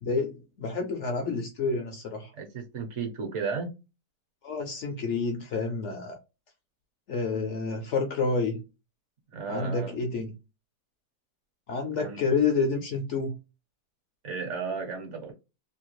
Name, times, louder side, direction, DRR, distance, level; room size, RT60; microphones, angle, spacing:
voice 1, 0.0-2.3 4.4-6.2 7.1-8.6 9.5-10.3 11.7-13.4, left 4 dB, 65° left, 0.7 m, -29 dB
voice 2, 2.4-3.7 9.3-9.9 12.0-12.2 14.2-15.3, right 5 dB, 55° right, 0.9 m, -34 dB
2.8 x 2.3 x 3.0 m
omnidirectional pair, 1.8 m